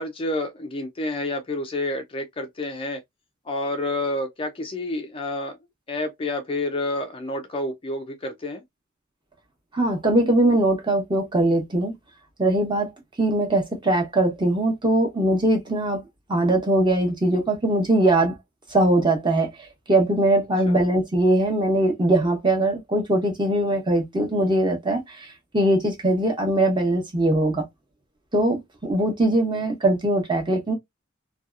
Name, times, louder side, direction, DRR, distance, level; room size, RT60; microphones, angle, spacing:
voice 1, 0.0-3.0 3.5-5.6 5.9-8.6 20.7-20.8, left 2 dB, 25° left, 0.4 m, -29 dB
voice 2, 9.7-11.9 12.4-12.9 13.2-16.0 16.3-18.3 18.7-19.5 19.9-25.3 25.5-27.6 28.3-30.7, right 1 dB, 25° right, 0.9 m, -21 dB
2.7 x 2.3 x 2.3 m
head